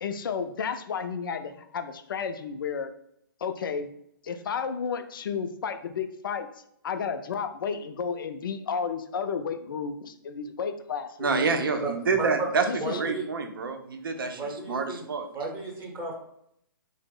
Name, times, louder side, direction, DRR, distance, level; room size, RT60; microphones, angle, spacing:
voice 1, 0.0-2.9 3.4-3.9 4.2-6.5 6.8-11.3 12.7-13.0, left 6 dB, 65° left, 8 dB, 0.4 m, -32 dB
voice 2, 11.2-12.6 13.0-14.4 14.7-15.2, right 4 dB, 75° right, 6 dB, 0.6 m, -27 dB
voice 3, 11.8-12.5 12.8-13.2 14.3-15.0 15.3-16.1, right 3 dB, 20° right, -2 dB, 0.7 m, -33 dB
3.0 x 2.0 x 3.5 m, 0.73 s
hypercardioid pair, 135°, 12 cm